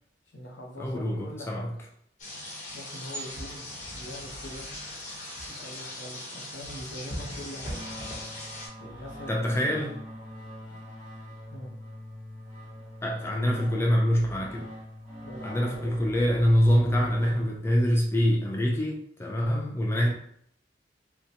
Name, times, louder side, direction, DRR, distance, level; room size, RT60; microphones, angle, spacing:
voice 1, 0.3-1.7 2.7-4.7 5.5-7.8 8.8-9.9 10.7-10.8 11.5-11.8 15.2-16.0, equal, 75° left, -1 dB, 0.9 m, -43 dB
voice 2, 0.8-1.7 9.3-9.9 13.0-14.7 15.4-20.1, equal, 15° left, -1 dB, 0.4 m, -25 dB
sound 1, 2.2-8.7, left 1 dB, 45° left, 1.0 m, -39 dB
sound 2, 7.6-17.9, equal, 10° right, 1.1 m, -43 dB
3.8 x 2.2 x 2.8 m, 0.68 s
head